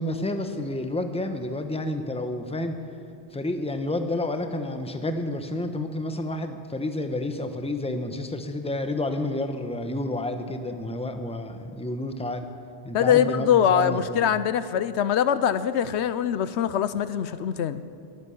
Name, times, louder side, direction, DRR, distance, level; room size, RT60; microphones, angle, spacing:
voice 1, 0.0-2.8 3.3-12.5 12.8-14.3, left 1 dB, 5° left, 7 dB, 0.8 m, -30 dB
voice 2, 12.9-17.8, left 9 dB, 85° left, 14 dB, 0.9 m, -23 dB
22.0 x 8.9 x 7.0 m, 2.6 s
omnidirectional pair, 1.1 m